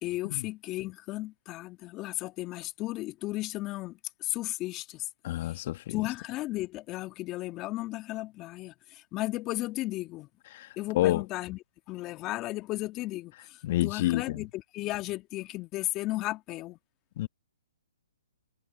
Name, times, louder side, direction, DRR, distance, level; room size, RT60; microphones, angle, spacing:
voice 1, 0.0-5.1 5.4-5.6 5.9-10.3 10.8-11.6 11.9-16.8, left 18 dB, 25° left, 1.8 m, -35 dB
voice 2, 5.2-6.0 10.5-10.7 10.9-11.2 13.6-14.4 17.2-17.3, left 15 dB, 45° left, 1.9 m, -28 dB
hypercardioid pair, 135°, 0 cm